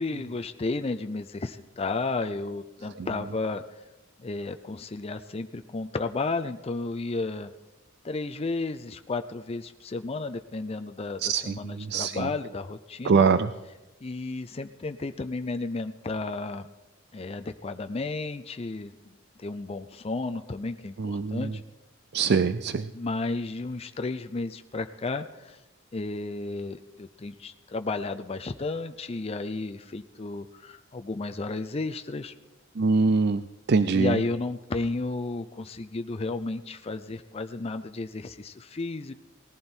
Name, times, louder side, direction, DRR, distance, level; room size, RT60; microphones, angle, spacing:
voice 1, 0.0-3.6 4.2-7.5 8.0-13.2 14.0-16.6 17.1-21.6 22.9-25.6 25.9-32.3 33.9-39.1, left 3 dB, 30° left, 8 dB, 0.5 m, -33 dB
voice 2, 11.2-12.3 13.0-13.5 21.0-21.5 22.1-22.9 32.8-33.4 33.7-34.2, right 4 dB, 55° right, 12 dB, 0.4 m, -23 dB
19.0 x 14.5 x 4.5 m, 1.0 s
head